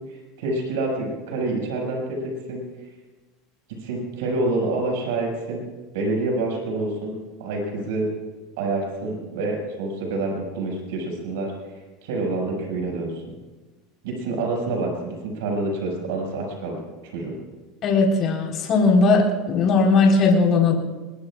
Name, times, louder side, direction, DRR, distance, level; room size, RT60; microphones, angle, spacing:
voice 1, 0.1-2.2 2.5-2.6 3.8-5.6 5.9-7.1 7.4-8.1 8.6-11.5 12.0-13.2 14.0-16.8 17.0-17.4, right 2 dB, 80° right, -1 dB, 6.2 m, -27 dB
voice 2, 17.8-20.7, left 3 dB, 45° left, 0 dB, 4.1 m, -18 dB
22.5 x 21.5 x 2.5 m, 1.2 s
supercardioid pair, 120°, 0 cm